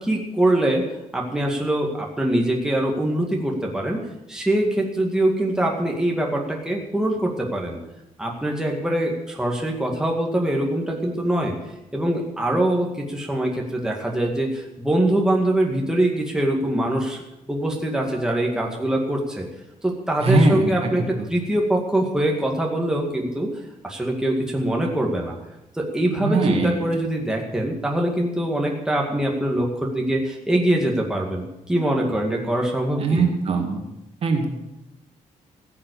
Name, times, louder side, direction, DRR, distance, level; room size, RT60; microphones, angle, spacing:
voice 1, 0.0-0.8 1.1-4.0 4.3-7.8 8.2-11.5 11.9-17.2 17.5-19.5 19.8-23.5 23.8-25.3 25.7-33.3, right 1 dB, 5° right, -1 dB, 2.1 m, -23 dB
voice 2, 20.2-20.9 26.2-26.7 33.0-33.8 34.2-34.5, right 3 dB, 50° right, 3 dB, 2.3 m, -20 dB
16.0 x 7.6 x 8.4 m, 0.91 s
wide cardioid pair, 150°, 13 cm